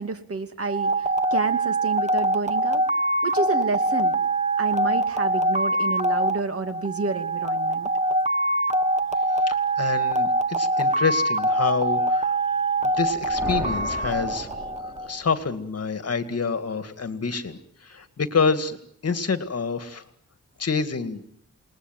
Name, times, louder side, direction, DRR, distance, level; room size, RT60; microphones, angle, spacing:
voice 1, 0.0-2.8 3.2-4.2 4.6-7.9, right 3 dB, 50° right, 8 dB, 2.5 m, -30 dB
sound 1, 0.7-15.1, right 2 dB, 25° right, 1.3 m, -24 dB
voice 2, 9.5-12.4 12.8-14.5 15.0-18.8 19.0-20.0 20.6-21.3, left 5 dB, 50° left, 10 dB, 2.2 m, -27 dB
sound 2, 12.9-15.5, left 1 dB, ahead, 5.2 m, -36 dB
29.0 x 20.0 x 9.3 m, 0.69 s
wide cardioid pair, 125°, 31 cm